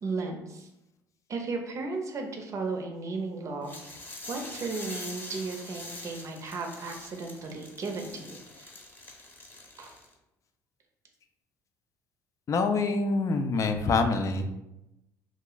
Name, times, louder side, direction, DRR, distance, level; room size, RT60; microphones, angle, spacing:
voice 1, 0.0-0.7 1.3-8.7 9.8-9.9, right 3 dB, 45° right, 3 dB, 0.6 m, -35 dB
sound 1, 3.6-10.1, left 2 dB, 25° left, 0.8 m, -44 dB
voice 2, 12.5-14.5, left 3 dB, 45° left, 7 dB, 0.4 m, -26 dB
2.4 x 2.0 x 3.8 m, 0.90 s
supercardioid pair, 75°, 7 cm